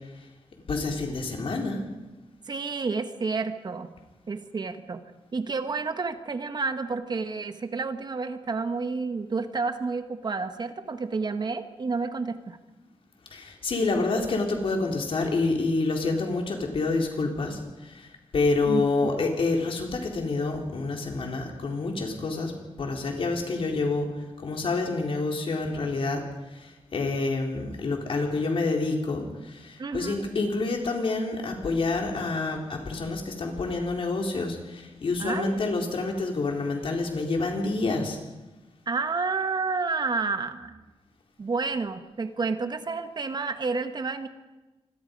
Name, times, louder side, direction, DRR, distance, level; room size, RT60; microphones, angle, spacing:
voice 1, 0.7-1.8 13.3-22.5 22.8-24.1 24.4-26.2 26.5-38.2, left 3 dB, 65° left, 2 dB, 4.0 m, -28 dB
voice 2, 2.5-3.9 4.3-5.0 5.3-12.6 18.7-19.1 29.8-30.3 35.2-35.6 38.9-40.8 41.4-44.3, right 4 dB, 45° right, 9 dB, 1.3 m, -30 dB
26.5 x 22.0 x 5.3 m, 1.1 s
wide cardioid pair, 160°, 10 cm